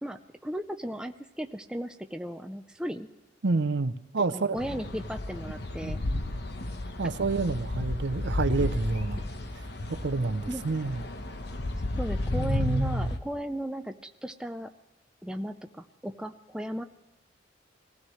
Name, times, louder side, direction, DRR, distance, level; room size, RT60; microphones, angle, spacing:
voice 1, 0.0-3.1 4.3-6.0 10.5-10.6 12.0-14.7 15.2-16.8, equal, 5° right, 6 dB, 0.5 m, -36 dB
voice 2, 3.4-4.6 5.8-6.4 7.0-9.2 9.9-11.0 12.3-13.1, right 3 dB, 65° right, 12 dB, 0.6 m, -29 dB
sound 1, 4.6-13.2, left 1 dB, 60° left, 1.1 m, -33 dB
21.5 x 15.5 x 3.2 m, 1.1 s
head